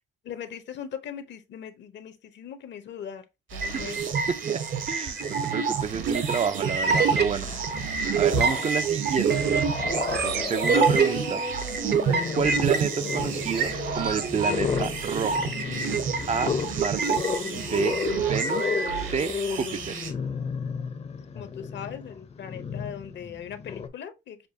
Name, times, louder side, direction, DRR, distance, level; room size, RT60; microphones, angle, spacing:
voice 1, 0.2-3.2 3.5-4.1 10.8-11.1 17.7-18.0 21.3-24.5, left 8 dB, 65° left, 0.8 m, -40 dB
sound 1, 3.5-20.1, right 5 dB, 75° right, 1.5 m, -37 dB
sound 2, 3.6-7.2 7.6-19.1, right 5 dB, 55° right, 0.7 m, -27 dB
voice 2, 4.3-7.5 7.8-9.6 10.2-11.4 12.3-15.5 16.3-17.2 17.6-20.0, right 6 dB, 35° right, 0.4 m, -30 dB
Growling, 5.6-5.7 6.7-7.7 8.2-8.9 9.3-23.9, left 5 dB, 30° left, 0.6 m, -33 dB
6.7 x 2.3 x 2.7 m
cardioid pair, 90°, 20 cm